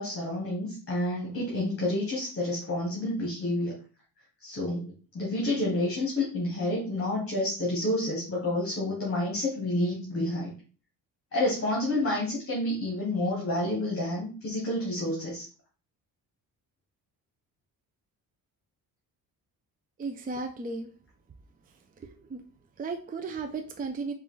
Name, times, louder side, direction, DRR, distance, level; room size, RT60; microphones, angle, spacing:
voice 1, 0.0-3.7 4.4-10.5 11.3-15.5, left 1 dB, 35° left, -3 dB, 1.5 m, -29 dB
voice 2, 20.0-20.9 21.7-22.4 22.8-24.1, right 4 dB, 25° right, 6 dB, 0.4 m, -35 dB
4.5 x 2.5 x 3.8 m, 0.37 s
cardioid pair, 100°, 38 cm